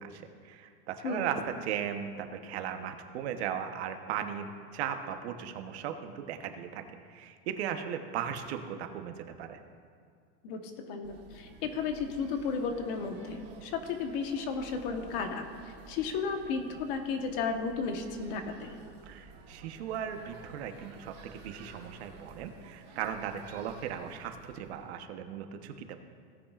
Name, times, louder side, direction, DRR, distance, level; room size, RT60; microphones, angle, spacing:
voice 1, 0.0-9.6 19.1-26.0, right 8 dB, 80° right, 7 dB, 1.1 m, -37 dB
voice 2, 10.9-15.5 15.9-18.7, left 5 dB, 55° left, 5 dB, 1.2 m, -33 dB
sound 1, 11.0-24.9, right 4 dB, 35° right, 1.2 m, -52 dB
17.5 x 8.8 x 2.4 m, 2.2 s
supercardioid pair, 170°, 32 cm